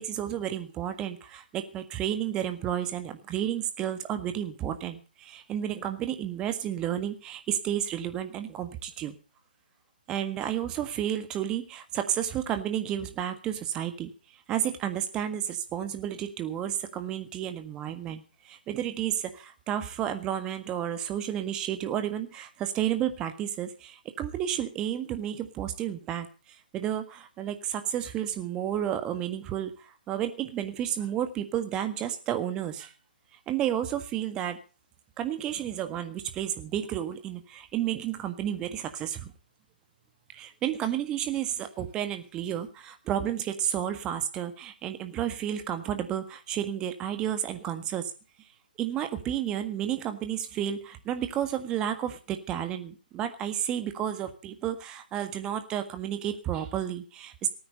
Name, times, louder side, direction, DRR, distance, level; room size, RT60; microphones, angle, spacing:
voice 1, 0.0-9.2 10.1-14.1 14.5-26.3 26.7-32.9 33.5-34.6 35.2-39.3 40.3-48.1 48.8-57.5, right 10 dB, 15° right, 9 dB, 1.6 m, -31 dB
18.0 x 9.5 x 6.6 m, 0.35 s
figure-of-eight pair, 140°, 5 cm